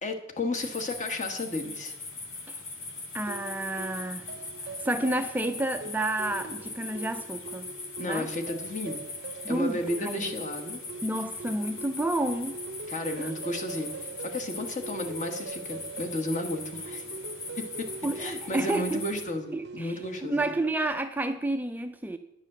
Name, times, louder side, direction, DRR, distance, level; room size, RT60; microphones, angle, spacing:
voice 1, 0.0-1.9 8.0-9.0 9.5-10.8 12.9-17.0 17.6-17.9 18.1-20.5, left 1 dB, 40° left, 1.3 m, -33 dB
sound 1, 0.6-19.2, left 3 dB, 75° left, 2.3 m, -40 dB
voice 2, 3.1-4.2 4.8-7.7 8.0-8.3 9.4-10.3 11.0-12.6 13.2-13.3 18.0-19.0 19.5-22.2, right 1 dB, 10° right, 0.4 m, -30 dB
sound 2, 3.3-20.9, right 4 dB, 55° right, 0.6 m, -43 dB
9.9 x 7.1 x 6.6 m
head